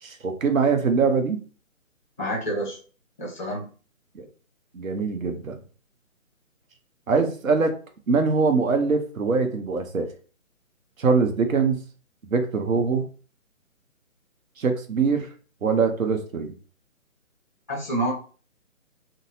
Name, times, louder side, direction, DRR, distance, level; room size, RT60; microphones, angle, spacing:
voice 1, 0.0-1.4 4.1-4.3 4.7-5.6 7.1-7.8 8.1-10.1 11.0-11.8 12.3-13.1 14.6-15.3 15.6-16.5, right 4 dB, 75° right, 5 dB, 0.9 m, -23 dB
voice 2, 2.2-2.8 3.2-3.7 17.7-18.1, right 1 dB, 10° left, -3 dB, 0.6 m, -28 dB
3.8 x 2.1 x 2.7 m, 0.39 s
figure-of-eight pair, 155°, 41 cm